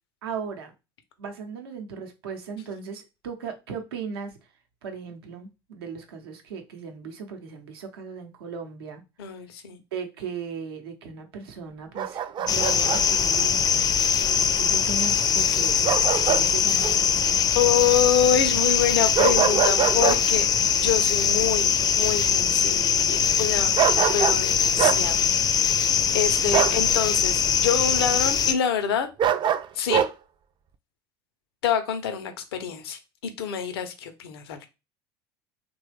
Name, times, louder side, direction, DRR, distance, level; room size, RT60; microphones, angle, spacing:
voice 1, 0.2-0.7 1.2-4.3 4.8-9.0 9.9-13.9 14.6-17.1 26.5-26.9, right 5 dB, 85° right, 0.7 m, -37 dB
voice 2, 9.2-9.8 15.5-15.6 17.6-20.5 20.7-21.7 22.0-23.7 24.1-25.2 26.1-29.1 29.7-30.0 31.6-34.7, left 9 dB, 85° left, 0.6 m, -26 dB
Bark, 12.0-13.0 15.8-16.5 16.8-17.0 19.1-20.2 23.8-24.4 24.8-25.0 26.5-26.8 29.2-30.1, right 9 dB, 40° right, 0.4 m, -23 dB
sound 1, 12.5-28.5, left 7 dB, 30° left, 0.4 m, -22 dB
3.0 x 2.3 x 3.2 m
hypercardioid pair, 75°, 13 cm